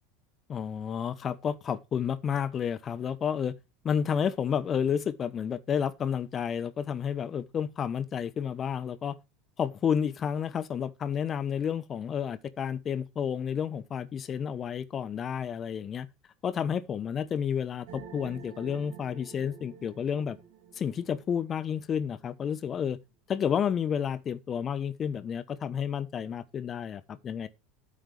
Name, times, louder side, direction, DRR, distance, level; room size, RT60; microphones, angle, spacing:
voice 1, 0.5-3.5 3.8-9.2 9.6-16.1 16.4-20.4 20.7-23.0 23.3-27.5, left 8 dB, 35° left, 1.1 m, -31 dB
sound 1, 17.9-22.3, right 7 dB, 60° right, 3.4 m, -49 dB
13.0 x 9.0 x 3.4 m
figure-of-eight pair, 80°, 0 cm